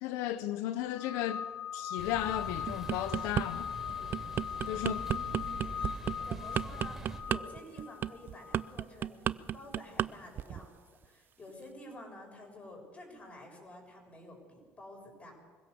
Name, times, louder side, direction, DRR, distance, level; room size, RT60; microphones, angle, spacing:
voice 1, 0.0-1.5 1.7-3.7 4.7-5.1, left 13 dB, 90° left, 0.7 m, -34 dB
sound 1, 0.9-8.7, left 8 dB, 50° left, 2.7 m, -40 dB
sound 2, 2.0-7.2, right 2 dB, 5° right, 4.2 m, -45 dB
sound 3, 2.7-3.5 3.9-10.1 10.4-10.7, right 10 dB, 45° right, 0.5 m, -32 dB
voice 2, 4.9-5.7 6.2-10.8 11.0-15.3, left 1 dB, 30° left, 7.1 m, -50 dB
24.5 x 16.5 x 7.0 m
cardioid pair, 115°, 5 cm